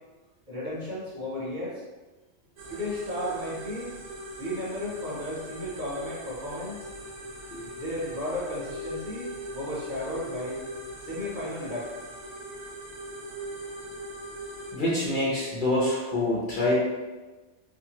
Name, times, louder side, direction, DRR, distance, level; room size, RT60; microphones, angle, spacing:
voice 1, 0.5-1.8 2.7-3.9 4.4-6.9 7.7-10.6 11.0-11.9, left 1 dB, 45° right, -8 dB, 0.8 m, -34 dB
sound 1, 2.6-14.7, equal, 85° right, 1.0 m, -40 dB
voice 2, 14.7-16.8, left 1 dB, 50° left, -8 dB, 0.9 m, -26 dB
2.6 x 2.4 x 2.8 m, 1.2 s
omnidirectional pair, 1.2 m